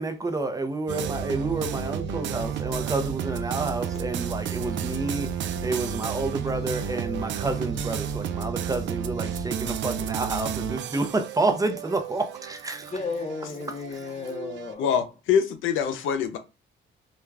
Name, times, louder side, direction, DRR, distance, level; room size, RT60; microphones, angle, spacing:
voice 1, 0.0-5.3 5.6-12.9, right 2 dB, 15° right, 0.6 m, -29 dB
sound 1, 0.9-14.7, right 8 dB, 65° right, 0.4 m, -32 dB
voice 2, 12.9-14.9, left 4 dB, 35° left, 0.7 m, -33 dB
voice 3, 14.8-16.4, left 7 dB, 80° left, 0.6 m, -24 dB
2.4 x 2.2 x 3.2 m
cardioid pair, 90°, 20 cm